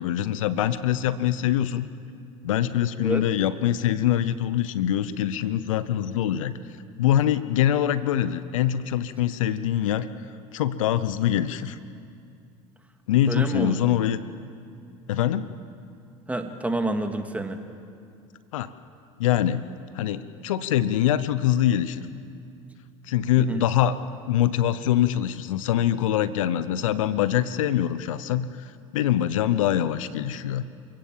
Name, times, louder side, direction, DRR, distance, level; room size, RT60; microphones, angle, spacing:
voice 1, 0.0-1.9 2.4-6.5 7.0-10.1 10.5-11.8 13.1-14.2 15.1-15.5 18.5-18.7 19.2-19.7 19.9-22.1 23.1-24.0 24.3-28.7 28.9-30.6, left 11 dB, 80° left, 14 dB, 0.8 m, -24 dB
voice 2, 13.3-13.8 16.3-17.6 23.4-23.6, right 2 dB, 10° right, 5 dB, 2.2 m, -28 dB
27.5 x 16.5 x 7.3 m, 2.4 s
hypercardioid pair, 70°, 17 cm